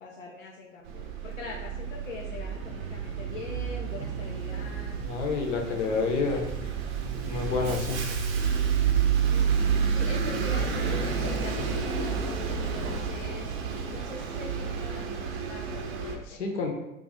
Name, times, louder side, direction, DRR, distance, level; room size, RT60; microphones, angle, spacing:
voice 1, 0.0-4.9 5.7-7.0 7.4-7.9 9.3-9.5 9.9-13.5 13.9-16.4, left 4 dB, 90° left, -2 dB, 0.5 m, -43 dB
Bus, 0.9-16.2, right 6 dB, 50° right, 0.6 m, -30 dB
voice 2, 5.0-6.4 7.2-8.0 16.3-16.7, left 4 dB, 65° left, 2 dB, 0.8 m, -28 dB
2.5 x 2.4 x 4.0 m, 0.94 s
figure-of-eight pair, 90°, 39 cm